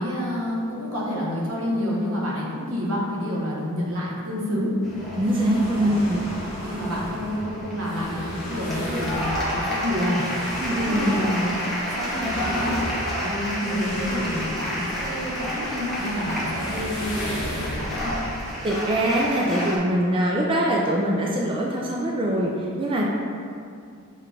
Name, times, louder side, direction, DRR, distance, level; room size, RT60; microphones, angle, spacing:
voice 1, 0.0-4.7 5.8-6.0 6.6-10.3 10.9-11.5 11.9-12.8 13.1-18.1, left 1 dB, 70° right, -4 dB, 1.0 m, -28 dB
sound 1, 4.8-19.8, equal, ahead, 0.8 m, -31 dB
voice 2, 5.1-6.2 10.6-11.1 13.2-13.3 18.6-23.1, right 1 dB, 25° right, -3 dB, 0.3 m, -23 dB
sound 2, 5.2-19.1, equal, 70° left, 1.2 m, -36 dB
6.6 x 2.4 x 3.2 m, 2.4 s
head